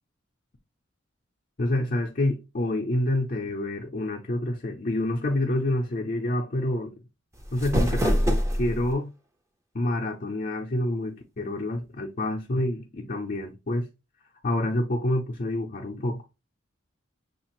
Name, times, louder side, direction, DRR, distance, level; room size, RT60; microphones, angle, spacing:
voice 1, 1.6-6.9 7.5-9.1 9.7-13.9 14.4-16.2, left 1 dB, 45° left, 0.6 m, -28 dB
sound 1, 7.3-8.9, equal, 15° right, 0.6 m, -25 dB
6.4 x 2.5 x 2.9 m
head